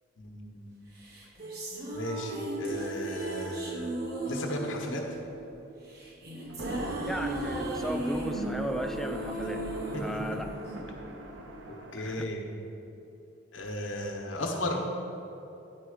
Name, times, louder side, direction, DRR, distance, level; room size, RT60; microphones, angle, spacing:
voice 1, 0.2-0.9 1.9-4.0 4.3-5.0 9.9-10.0 11.9-12.4 13.5-14.8, left 1 dB, 80° left, 1 dB, 1.0 m, -35 dB
sound 1, 1.0-11.4, right 2 dB, 50° right, 1.1 m, -36 dB
sound 2, 6.5-12.1, equal, 70° right, 0.7 m, -40 dB
voice 2, 7.0-9.7 10.0-10.5 12.0-12.3, equal, ahead, 5 dB, 0.3 m, -36 dB
9.8 x 4.4 x 5.0 m, 2.9 s
head